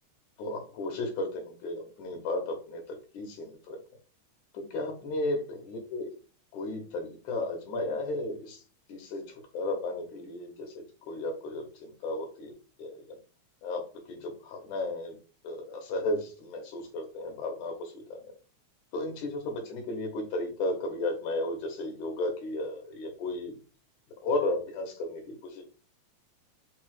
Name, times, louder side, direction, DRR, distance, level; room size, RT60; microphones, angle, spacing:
voice 1, 0.4-3.8 4.5-6.1 6.5-8.6 8.9-12.5 12.8-13.2 13.6-15.2 15.4-18.2 18.9-23.6 24.2-25.6, left 2 dB, 90° left, 4 dB, 2.4 m, -34 dB
5.3 x 2.0 x 4.7 m, 0.37 s
omnidirectional pair, 3.3 m